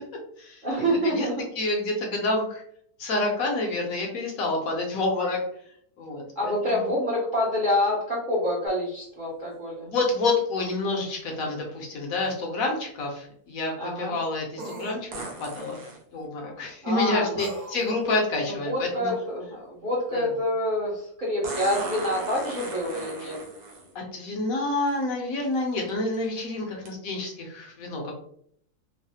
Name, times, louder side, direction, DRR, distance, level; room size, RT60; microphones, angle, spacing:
voice 1, 0.6-1.5 6.4-9.9 13.8-14.2 16.8-17.5 17.8-17.9 18.4-23.4, left 1 dB, 45° right, -6 dB, 0.7 m, -27 dB
voice 2, 1.6-2.6 3.0-5.4 6.0-6.5 9.8-15.0 15.4-15.8 16.1-18.7 19.0-19.1 20.1-20.2 23.9-28.1, left 2 dB, 70° left, 1 dB, 1.0 m, -28 dB
sound 1, 8.7-8.8 15.1-16.0 18.0-18.1 21.4-23.9 24.9-25.0 25.6-25.9 26.9-27.0, right 3 dB, 85° right, 1.3 m, -37 dB
sound 2, 12.2-12.3 14.6-15.0 17.4-17.9, right 1 dB, 70° right, 1.2 m, -38 dB
3.1 x 2.0 x 2.7 m, 0.66 s
omnidirectional pair, 1.7 m